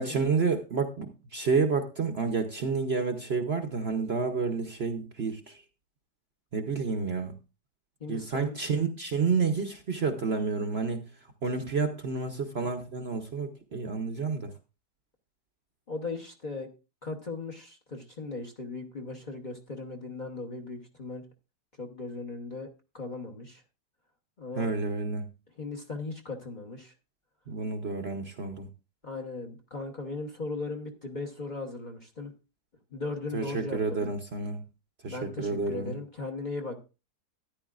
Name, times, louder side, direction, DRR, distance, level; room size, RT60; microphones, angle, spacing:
voice 1, 0.0-5.6 6.5-7.4 8.1-11.1 11.4-14.5 24.6-25.2 27.5-28.7 33.3-34.6 35.0-35.9, right 4 dB, 50° right, 5 dB, 0.9 m, -30 dB
voice 2, 8.0-8.6 15.9-16.7 17.0-21.2 21.8-22.7 22.9-23.6 24.4-24.7 25.5-26.9 29.0-32.3 32.9-34.1 35.1-36.8, left 3 dB, 30° left, 3 dB, 1.0 m, -37 dB
13.5 x 10.5 x 2.5 m, 0.30 s
omnidirectional pair, 1.8 m